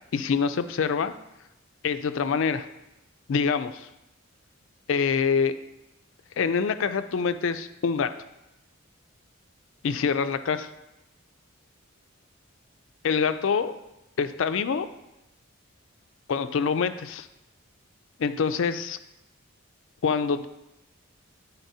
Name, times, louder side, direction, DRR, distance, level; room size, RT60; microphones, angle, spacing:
voice 1, 0.1-1.1 1.8-2.6 3.3-3.9 4.9-5.5 6.4-8.2 9.8-10.7 13.0-13.7 14.2-14.9 16.3-17.3 18.2-19.0 20.0-20.5, left 6 dB, 60° left, 10 dB, 0.4 m, -25 dB
10.0 x 4.0 x 2.7 m, 0.91 s
head